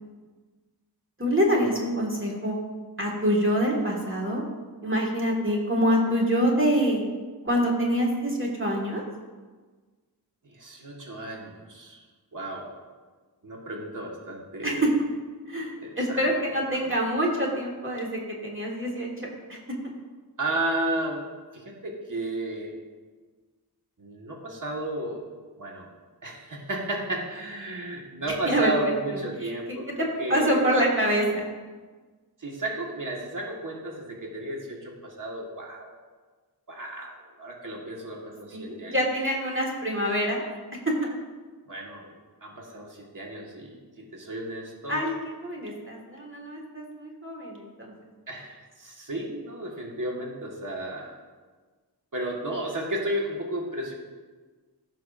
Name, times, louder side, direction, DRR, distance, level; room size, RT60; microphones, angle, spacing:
voice 1, 1.2-2.6 3.0-4.4 4.8-7.0 7.4-9.0 14.6-14.9 15.5-19.6 28.5-28.9 29.4-29.5 30.0-31.4 38.5-40.4 40.8-40.9 44.9-47.9, equal, 30° right, -2 dB, 1.6 m, -26 dB
voice 2, 10.4-12.0 12.3-12.7 13.4-14.8 15.8-16.2 16.7-16.8 20.4-21.3 21.5-22.8 24.0-25.2 25.6-25.9 26.2-30.6 32.4-35.9 36.7-38.9 41.7-42.1 42.4-45.1 48.3-51.1 52.1-53.9, right 1 dB, 50° right, -1 dB, 1.5 m, -33 dB
15.5 x 5.6 x 2.5 m, 1.4 s
wide cardioid pair, 60°, 40 cm